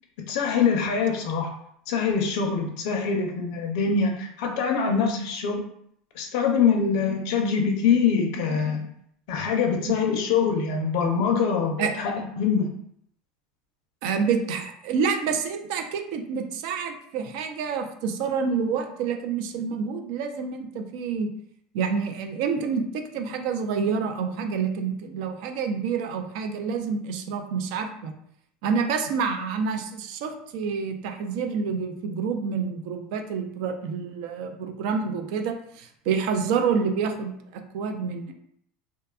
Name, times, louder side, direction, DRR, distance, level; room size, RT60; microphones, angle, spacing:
voice 1, 0.3-1.5 1.9-5.6 6.2-8.9 9.3-12.7, left 6 dB, 70° left, 2 dB, 0.4 m, -24 dB
voice 2, 14.0-21.3 21.7-28.1 28.6-38.3, right 5 dB, 70° right, 5 dB, 0.4 m, -28 dB
2.7 x 2.2 x 2.3 m, 0.69 s
supercardioid pair, 105°, 4 cm